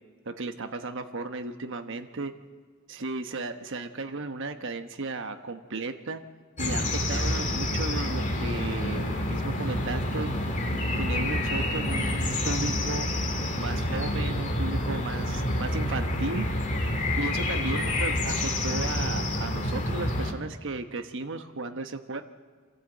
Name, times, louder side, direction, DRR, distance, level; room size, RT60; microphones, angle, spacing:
voice 1, 0.3-2.3 2.9-6.2 6.6-10.3 11.0-13.1 13.6-16.5 16.9-22.2, right 3 dB, 60° right, 7 dB, 1.1 m, -35 dB
sound 1, 6.6-20.3, left 1 dB, 35° left, 2.1 m, -28 dB
26.0 x 13.5 x 7.9 m, 1.5 s
head